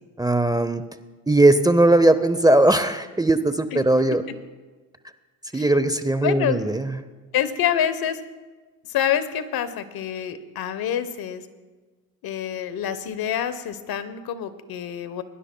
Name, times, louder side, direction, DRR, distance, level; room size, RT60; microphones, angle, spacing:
voice 1, 0.2-0.8 1.3-4.2 5.5-6.9, right 2 dB, 10° right, 10 dB, 0.6 m, -19 dB
voice 2, 6.2-6.6 7.3-8.2 8.9-11.5 12.2-15.2, left 10 dB, 65° left, 12 dB, 1.0 m, -27 dB
22.0 x 11.0 x 2.2 m, 1.3 s
supercardioid pair, 75°, 40 cm